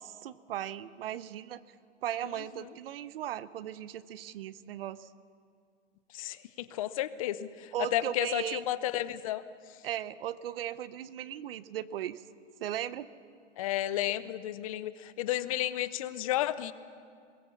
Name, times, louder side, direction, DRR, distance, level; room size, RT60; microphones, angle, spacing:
voice 1, 0.0-1.6 2.0-5.1 7.7-8.6 9.8-12.2 12.6-13.1, right 11 dB, 50° right, 16 dB, 0.8 m, -37 dB
voice 2, 6.1-9.4 13.6-16.7, left 13 dB, 30° left, 15 dB, 0.6 m, -32 dB
22.0 x 18.5 x 7.1 m, 2.2 s
hypercardioid pair, 155°, 36 cm